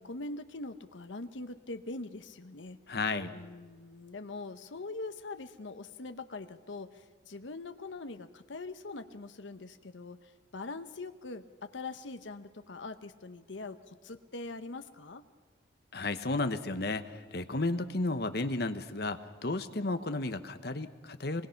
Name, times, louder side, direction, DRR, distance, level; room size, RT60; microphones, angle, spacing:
voice 1, 0.0-2.8 3.3-15.2, left 3 dB, 80° left, 8 dB, 0.9 m, -43 dB
voice 2, 2.9-3.3 15.9-21.5, left 2 dB, 55° left, 9 dB, 1.1 m, -33 dB
24.0 x 20.5 x 5.8 m, 1.4 s
head